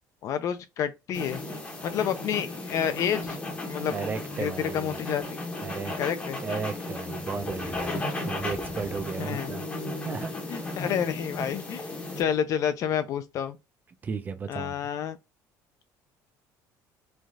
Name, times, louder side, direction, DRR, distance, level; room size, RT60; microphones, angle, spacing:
voice 1, 0.2-1.4 1.8-3.4 3.7-3.9 4.3-5.2 6.0-6.4 9.2-9.5 10.5-11.8 12.2-13.6 14.5-15.2, left 9 dB, 45° left, 0.4 m, -29 dB
sound 1, 1.1-12.2, left 2 dB, 15° left, 0.7 m, -35 dB
voice 2, 3.9-5.0 5.6-6.0 6.4-9.6 10.0-10.8 12.3-12.4 14.0-14.7, right 5 dB, 25° right, 0.4 m, -35 dB
3.1 x 2.3 x 2.6 m
cardioid pair, 155°, 7 cm